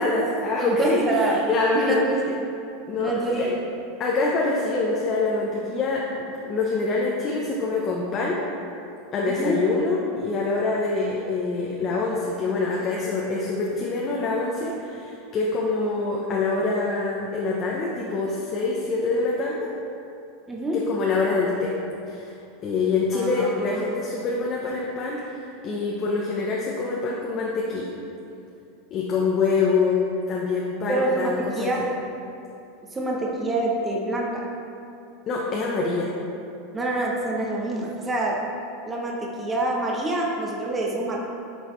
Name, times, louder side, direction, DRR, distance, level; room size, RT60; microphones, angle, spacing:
voice 1, 0.0-2.0 2.9-3.5 4.0-8.4 9.1-19.7 20.7-21.7 22.1-22.3 22.6-27.9 28.9-30.0 30.3-31.9 35.3-36.1, left 3 dB, 40° left, -3 dB, 0.8 m, -25 dB
voice 2, 0.6-1.4 1.7-2.2 3.0-3.5 9.3-9.6 20.5-20.8 23.1-23.8 30.9-31.8 32.9-34.5 36.7-38.6 38.9-41.2, right 2 dB, 15° right, -3 dB, 0.9 m, -26 dB
8.2 x 4.0 x 3.2 m, 2.6 s
hypercardioid pair, 110°, 0 cm